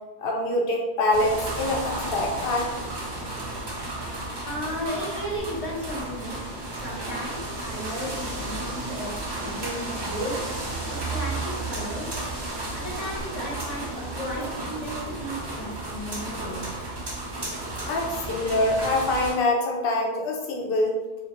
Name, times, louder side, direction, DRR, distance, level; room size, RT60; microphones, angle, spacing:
voice 1, 0.2-2.7 17.9-21.0, left 2 dB, 70° left, 0 dB, 0.8 m, -25 dB
sound 1, 1.1-19.3, right 2 dB, 35° right, 0.4 m, -33 dB
voice 2, 4.5-6.4 6.7-10.3 10.9-12.2 12.7-16.7, equal, 40° left, -7 dB, 0.8 m, -34 dB
2.4 x 2.0 x 2.8 m, 1.2 s
omnidirectional pair, 1.0 m